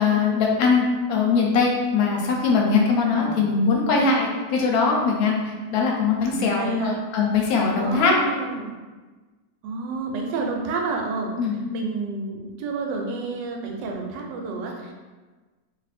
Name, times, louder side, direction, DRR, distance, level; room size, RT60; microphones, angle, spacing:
voice 1, 0.0-8.1 11.4-11.5, left 4 dB, 65° left, -1 dB, 1.0 m, -21 dB
voice 2, 3.1-3.6 6.3-6.9 7.8-8.8 9.6-11.3 11.7-14.9, right 3 dB, 80° right, 1 dB, 1.2 m, -29 dB
2.6 x 2.6 x 4.1 m, 1.3 s
omnidirectional pair, 1.9 m